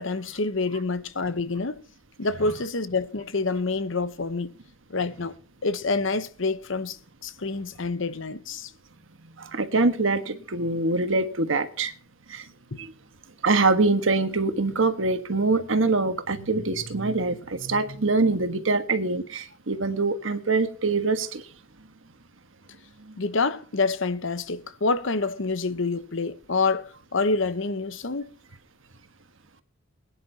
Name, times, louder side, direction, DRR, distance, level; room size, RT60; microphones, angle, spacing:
voice 1, 0.0-1.8 2.2-4.5 4.9-5.3 5.6-7.0 7.2-8.7 23.2-28.3, left 3 dB, 65° left, 0.9 m, -27 dB
voice 2, 9.4-11.9 12.3-12.5 12.8-12.9 13.4-21.4 23.0-23.1, right 3 dB, 65° right, 1.4 m, -24 dB
22.0 x 10.0 x 2.8 m
head